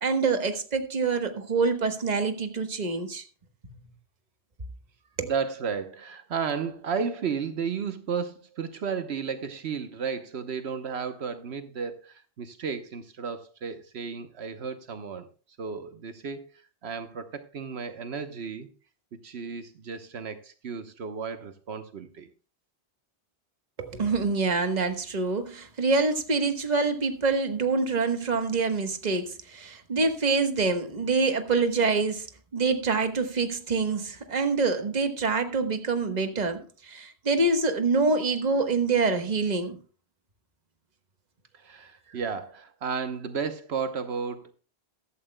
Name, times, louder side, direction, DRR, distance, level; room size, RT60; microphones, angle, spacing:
voice 1, 0.0-3.2 3.6-3.7 5.2-5.3 23.8-32.3 32.5-39.8, right 4 dB, 40° right, 1.3 m, -26 dB
voice 2, 5.2-15.3 15.6-18.7 19.2-22.3 41.5-44.5, right 6 dB, 75° right, 1.2 m, -33 dB
14.5 x 12.5 x 2.2 m
omnidirectional pair, 1.1 m